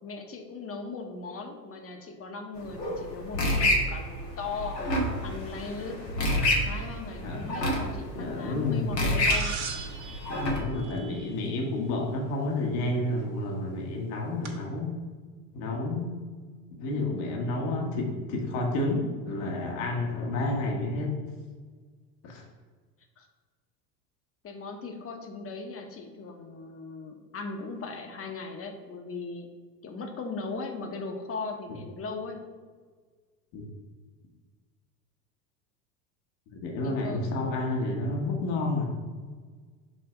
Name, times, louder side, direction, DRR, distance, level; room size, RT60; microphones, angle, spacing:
voice 1, 0.0-4.8 5.2-6.0 6.6-9.6 23.2-23.3 24.4-29.5 29.8-32.4 36.7-37.2, left 4 dB, 30° left, 3 dB, 1.1 m, -38 dB
sound 1, 2.6-10.6, left 1 dB, 90° left, 1.6 m, -29 dB
voice 2, 7.2-7.7 8.1-8.9 10.3-15.0 15.5-16.2 16.8-21.1 22.2-22.4 33.5-33.6 36.5-38.9, left 2 dB, 60° left, 0 dB, 1.5 m, -30 dB
sound 2, 9.3-11.6 13.2-13.3 14.4-14.5, right 6 dB, 50° right, 1.6 m, -38 dB
5.8 x 3.4 x 5.8 m, 1.5 s
hypercardioid pair, 80°, 48 cm